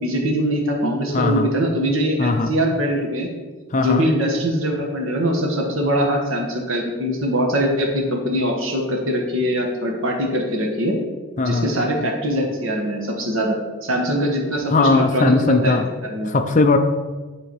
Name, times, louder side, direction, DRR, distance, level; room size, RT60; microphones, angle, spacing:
voice 1, 0.0-3.3 3.8-11.0 11.4-16.3, equal, 70° right, 1 dB, 1.4 m, -22 dB
voice 2, 0.8-1.5 2.2-2.5 3.7-4.1 11.4-11.7 14.7-15.9 16.2-16.8, left 3 dB, 35° left, 5 dB, 0.5 m, -19 dB
10.0 x 3.7 x 4.6 m, 1.3 s
head